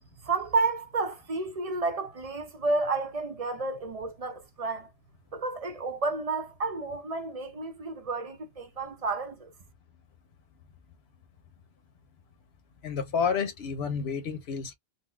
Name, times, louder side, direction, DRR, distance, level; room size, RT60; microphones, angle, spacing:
voice 1, 0.2-4.9 5.3-9.5, right 3 dB, 45° right, 0.6 m, -31 dB
voice 2, 12.8-14.7, left 6 dB, 85° left, 1.0 m, -30 dB
4.0 x 2.1 x 2.2 m
omnidirectional pair, 1.0 m